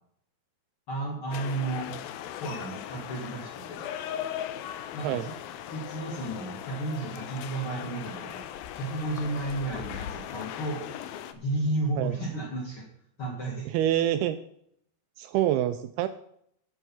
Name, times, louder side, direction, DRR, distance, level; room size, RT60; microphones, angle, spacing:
voice 1, 0.9-2.0 2.4-3.8 4.9-5.3 5.7-8.4 8.7-10.8 11.3-12.8 13.2-13.7, right 2 dB, 50° left, -2 dB, 1.7 m, -32 dB
sound 1, 1.3-11.3, left 10 dB, 80° left, 2.2 m, -38 dB
voice 2, 13.7-14.4 15.2-16.1, right 12 dB, 85° right, 10 dB, 2.3 m, -26 dB
10.0 x 8.1 x 5.4 m, 0.71 s
omnidirectional pair, 4.8 m